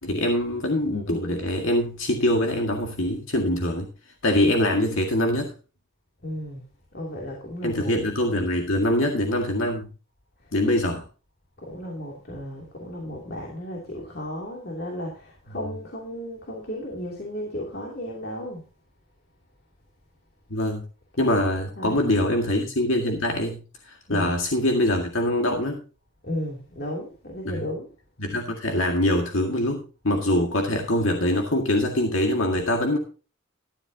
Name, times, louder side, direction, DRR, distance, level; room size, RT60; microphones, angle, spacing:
voice 1, 0.0-3.9 4.2-5.5 7.6-9.9 10.5-11.0 15.6-15.7 20.5-20.8 21.2-25.8 27.4-27.7 28.2-33.0, left 1 dB, 70° left, 2.0 m, -24 dB
voice 2, 6.2-6.6 6.9-7.9 11.6-18.6 21.2-22.0 24.1-24.3 26.2-27.9, equal, 45° left, 2.9 m, -34 dB
14.0 x 11.0 x 2.8 m
head